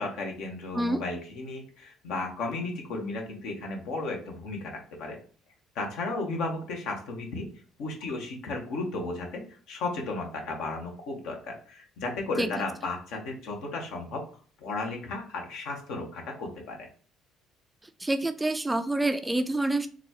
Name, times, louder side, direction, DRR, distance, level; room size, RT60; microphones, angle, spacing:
voice 1, 0.0-4.7 5.0-5.2 5.7-7.5 7.8-14.2 14.6-16.9, left 3 dB, 70° left, 2 dB, 0.9 m, -34 dB
voice 2, 18.0-19.9, right 2 dB, 10° right, 9 dB, 0.4 m, -27 dB
3.9 x 2.3 x 2.9 m, 0.44 s
hypercardioid pair, 60°, 0 cm